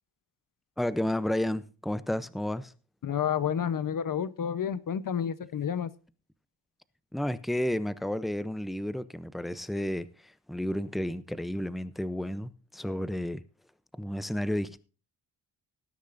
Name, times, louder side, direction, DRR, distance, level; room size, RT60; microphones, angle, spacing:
voice 1, 0.8-2.7 7.1-13.4 14.0-14.9, left 1 dB, ahead, 0.6 m, -32 dB
voice 2, 3.0-5.9, left 8 dB, 50° left, 0.9 m, -30 dB
18.5 x 10.0 x 2.6 m
cardioid pair, 120°, 42 cm